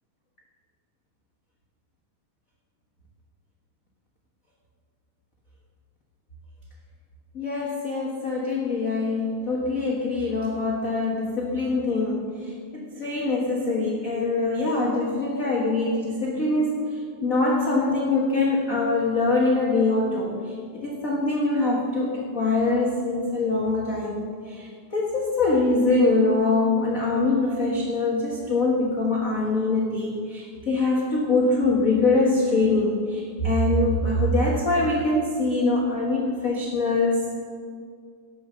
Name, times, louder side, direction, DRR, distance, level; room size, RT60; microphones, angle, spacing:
voice 1, 7.3-12.2 12.7-20.4 20.7-37.4, left 2 dB, 40° left, -3 dB, 1.2 m, -23 dB
18.0 x 7.3 x 6.3 m, 2.1 s
omnidirectional pair, 3.5 m